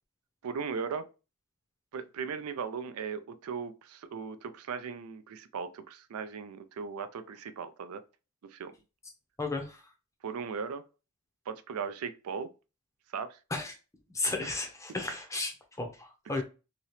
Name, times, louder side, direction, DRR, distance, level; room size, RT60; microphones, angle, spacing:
voice 1, 0.4-1.1 1.9-8.0 8.5-8.7 10.2-10.8 11.5-12.5 13.1-13.4 14.4-14.6 16.3-16.4, right 6 dB, 85° right, 0.4 m, -38 dB
voice 2, 9.4-9.8 13.5-13.8 14.1-16.4, left 2 dB, 15° left, 0.6 m, -34 dB
2.9 x 2.8 x 3.1 m
head